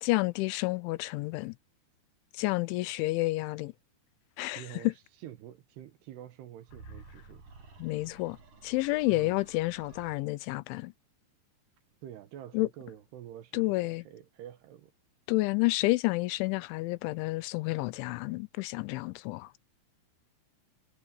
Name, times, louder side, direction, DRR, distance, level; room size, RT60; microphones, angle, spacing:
voice 1, 0.0-1.6 2.3-3.7 4.4-4.9 7.8-8.4 8.6-10.9 12.5-12.7 13.5-14.0 15.3-19.5, left 21 dB, 90° left, 3.2 m, -30 dB
voice 2, 4.5-4.9 5.2-7.4 9.1-9.4 12.0-14.9, right 11 dB, 70° right, 3.1 m, -47 dB
sound 1, 6.6-10.2, right 3 dB, 45° right, 8.9 m, -52 dB
omnidirectional pair, 5.3 m